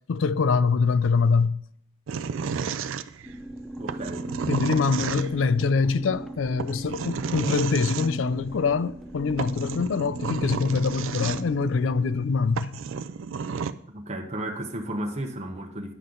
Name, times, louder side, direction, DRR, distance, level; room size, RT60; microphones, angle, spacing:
voice 1, 0.1-1.6 4.5-12.7, left 4 dB, 70° left, 0.4 m, -24 dB
sound 1, 2.1-3.4 3.9-5.5 6.6-8.1 9.0-9.1 9.4-11.7 12.2-12.3 12.6-13.7, right 6 dB, 80° right, 0.4 m, -32 dB
sound 2, 3.2-12.3, right 1 dB, ahead, 0.6 m, -38 dB
voice 2, 3.8-4.3 13.9-15.9, right 1 dB, 35° right, 1.0 m, -33 dB
9.9 x 7.6 x 3.8 m
head